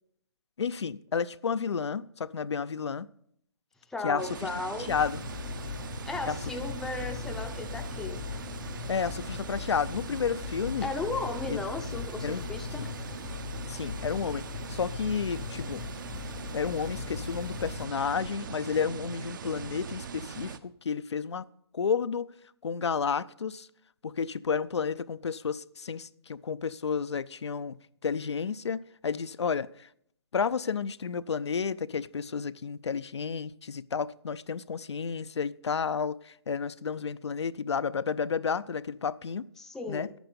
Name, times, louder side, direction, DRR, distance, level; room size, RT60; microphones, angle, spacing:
voice 1, 0.6-3.1 4.0-4.2 4.8-5.2 6.3-6.4 8.9-10.9 11.5-11.6 12.2-12.5 12.8-12.9 13.7-15.8 16.5-21.4 21.7-22.3 22.6-23.7 24.0-29.7 30.3-39.4 39.9-40.1, left 6 dB, 90° left, 0.5 m, -31 dB
voice 2, 3.9-4.9 6.1-8.2 10.8-12.9 39.6-40.1, left 3 dB, 5° left, 0.5 m, -35 dB
sound 1, 4.2-20.6, right 6 dB, 50° right, 0.7 m, -41 dB
sound 2, 4.9-17.8, left 8 dB, 45° left, 0.7 m, -39 dB
10.5 x 9.1 x 5.2 m
hypercardioid pair, 150°, 14 cm